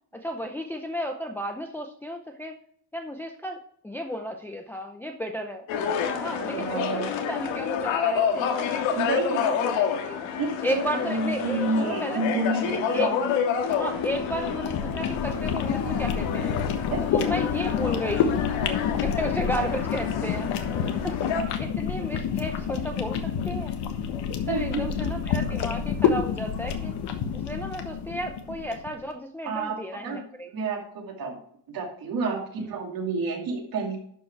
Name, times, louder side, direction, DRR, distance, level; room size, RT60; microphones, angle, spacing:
voice 1, 0.1-2.6 2.9-3.6 3.8-5.6 6.2-10.2 10.6-12.2 12.9-13.1 13.7-16.6 17.1-18.3 19.0-20.5 21.0-23.7 24.5-26.9 27.3-30.5, equal, 5° left, 3 dB, 0.5 m, -33 dB
sound 1, 5.7-21.4, left 7 dB, 85° left, 1.8 m, -29 dB
voice 2, 6.4-7.1 8.9-9.4 10.4-13.3 16.9-17.0 24.5-24.9 29.4-30.2 30.5-31.4 31.7-34.0, right 3 dB, 50° right, 1 dB, 2.5 m, -30 dB
sound 2, 13.7-28.9, left 7 dB, 60° left, 1.4 m, -29 dB
11.5 x 5.2 x 4.5 m, 0.66 s
cardioid pair, 160°, 45 cm